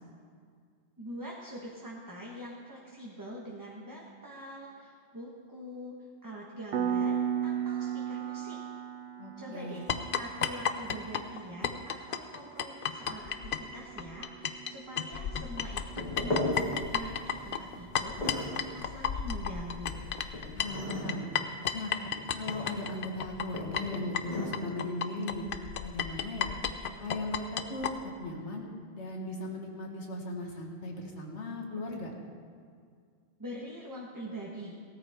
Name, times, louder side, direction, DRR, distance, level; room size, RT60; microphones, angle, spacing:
voice 1, 1.0-6.0 6.2-8.6 9.4-9.9 10.1-18.2 18.5-20.1 33.4-34.8, equal, 20° right, -4 dB, 1.3 m, -44 dB
Piano, 6.7-17.1, right 8 dB, 60° right, 0.8 m, -38 dB
voice 2, 9.2-9.8 20.5-21.3 21.7-21.9 22.3-25.5 25.8-26.5 26.9-27.9 28.2-28.6 28.9-32.1, left 2 dB, 80° left, 1 dB, 1.9 m, -38 dB
sound 1, 9.9-14.7 15.0-27.9, left 8 dB, 55° left, 0.7 m, -33 dB
sound 2, 15.5-24.6, left 1 dB, 40° left, 2.1 m, -38 dB
16.5 x 13.5 x 3.6 m, 2.2 s
omnidirectional pair, 1.2 m